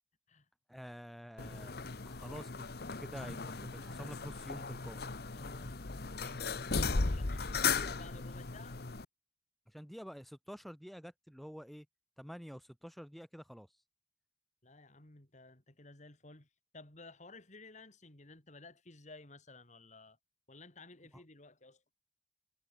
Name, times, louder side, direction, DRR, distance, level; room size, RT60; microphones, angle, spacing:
voice 1, 0.7-1.8 2.1-5.0 9.7-11.9 12.2-13.7 21.1-21.2, equal, ahead, 6.8 m, -48 dB
sound 1, 1.4-9.0, left 4 dB, 60° left, 1.1 m, -37 dB
voice 2, 5.3-5.8 6.2-8.8 14.6-20.2 20.5-21.8, left 2 dB, 45° left, 3.2 m, -55 dB
head